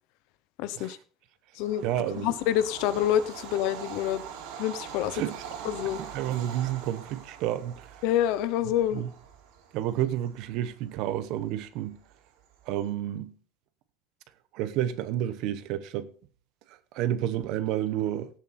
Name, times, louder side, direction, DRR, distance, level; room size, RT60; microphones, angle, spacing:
voice 1, 0.6-1.0 1.5-1.9 2.1-4.2 4.6-5.2 5.6-6.0 8.0-9.0, left 11 dB, 60° left, 0.9 m, -27 dB
Bird vocalization bird call bird song / Train, 1.6-12.8, right 7 dB, 75° right, 3.6 m, -44 dB
voice 2, 1.8-2.3 5.1-7.9 8.9-9.1 9.7-12.0 12.7-13.3 14.5-16.1 16.9-18.3, right 12 dB, 55° right, 1.0 m, -30 dB
17.0 x 7.2 x 4.2 m
cardioid pair, 175°, 0 cm